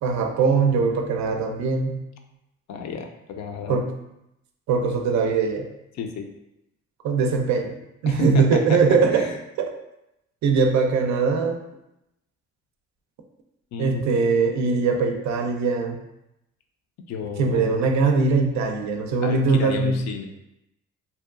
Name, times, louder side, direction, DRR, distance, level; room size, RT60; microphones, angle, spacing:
voice 1, 0.0-2.0 3.7-3.9 4.7-5.7 7.0-7.8 8.0-9.3 9.6-9.7 10.4-11.6 13.8-16.0 17.4-20.0, right 4 dB, 65° right, 5 dB, 0.4 m, -21 dB
voice 2, 2.7-3.8 5.9-6.3 8.1-8.8 9.1-9.4 13.7-14.0 17.1-17.9 19.2-20.3, left 5 dB, 65° left, 5 dB, 0.4 m, -32 dB
2.7 x 2.2 x 2.3 m, 0.86 s
cardioid pair, 90°, 30 cm